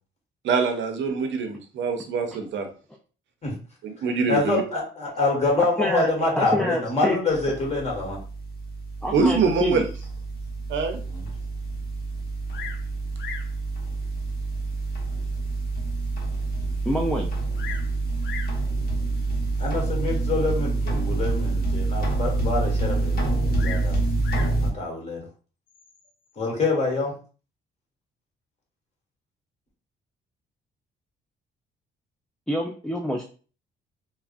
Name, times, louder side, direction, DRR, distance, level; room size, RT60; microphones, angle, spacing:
voice 1, 0.4-2.7 3.8-4.6 9.1-9.9 10.7-11.0, right 5 dB, 70° right, 6 dB, 0.6 m, -24 dB
voice 2, 4.3-8.2 11.1-11.3 19.6-23.9 24.6-25.3 26.4-27.2, left 2 dB, 35° left, -2 dB, 1.4 m, -26 dB
voice 3, 6.4-7.2 9.0-9.8 16.9-17.3 32.5-33.2, equal, 5° left, -1 dB, 0.3 m, -26 dB
sound 1, 7.3-24.7, right 3 dB, 50° left, 1.0 m, -27 dB
Bird vocalization bird call bird song, 12.5-12.9 13.2-13.6 14.4-14.5 15.1-15.2 15.7-15.8 16.0-16.1 17.2-17.9 18.2-18.6 19.6-19.9 23.6-24.6 25.7-26.1, left 7 dB, 70° left, 0.5 m, -38 dB
3.4 x 2.1 x 2.4 m, 0.38 s
cardioid pair, 90°, 20 cm